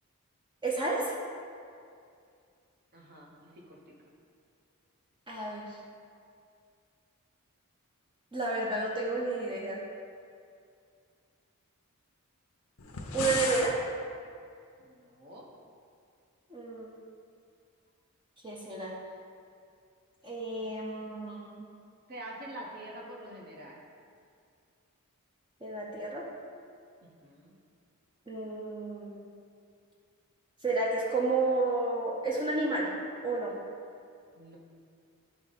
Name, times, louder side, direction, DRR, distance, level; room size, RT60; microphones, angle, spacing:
voice 1, 0.6-1.2 5.3-5.8 8.3-9.8 13.1-13.8 16.5-16.9 18.4-18.9 20.2-21.7 25.6-26.2 28.3-29.2 30.6-32.9 33.2-33.5, right 3 dB, 20° right, -4 dB, 0.8 m, -31 dB
voice 2, 2.9-3.8 14.8-15.5 22.1-23.8 27.2-27.5 34.4-34.6, right 1 dB, 45° right, -2 dB, 1.2 m, -46 dB
sound 1, 12.8-13.7, left 4 dB, 70° left, 0.8 m, -34 dB
11.0 x 3.7 x 4.1 m, 2.3 s
head